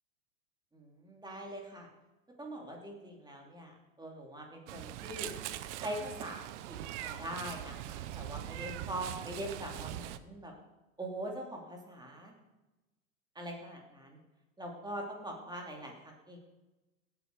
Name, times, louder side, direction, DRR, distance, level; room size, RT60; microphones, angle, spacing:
voice 1, 0.7-1.9 2.4-5.3 5.8-10.5 11.0-12.3 13.3-14.2 14.6-16.4, right 1 dB, 10° right, 1 dB, 3.0 m, -43 dB
Meow, 4.7-10.2, right 13 dB, 55° right, 0.9 m, -42 dB
17.0 x 8.7 x 4.9 m, 1.1 s
hypercardioid pair, 95°, 42 cm